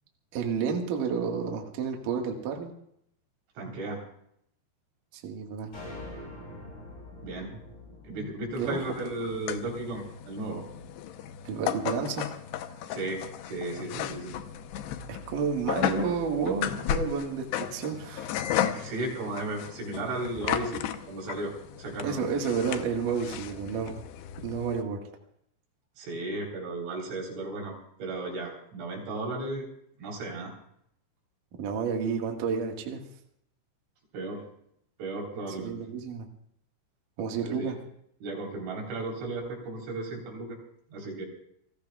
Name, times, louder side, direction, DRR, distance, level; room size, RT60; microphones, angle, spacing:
voice 1, 0.3-2.7 5.1-5.7 7.5-7.6 8.1-8.3 8.5-8.8 11.4-12.3 15.1-18.3 22.0-23.9 24.4-25.0 31.6-33.0 35.6-36.3 37.2-37.8, right 6 dB, 60° right, 2 dB, 2.7 m, -30 dB
voice 2, 3.6-4.0 7.2-7.5 8.0-10.6 12.9-13.2 13.5-14.4 18.7-20.8 21.1-21.5 21.8-22.6 26.0-27.7 28.0-29.7 30.0-30.5 34.1-34.4 35.0-35.7 37.4-37.7 38.2-40.6 40.9-41.3, right 2 dB, 85° right, -1 dB, 6.3 m, -35 dB
sound 1, 5.7-10.1, left 1 dB, 35° left, 8.3 m, -45 dB
sound 2, 8.5-24.8, left 10 dB, 75° left, 2.8 m, -35 dB
29.5 x 15.0 x 2.4 m, 0.70 s
omnidirectional pair, 5.2 m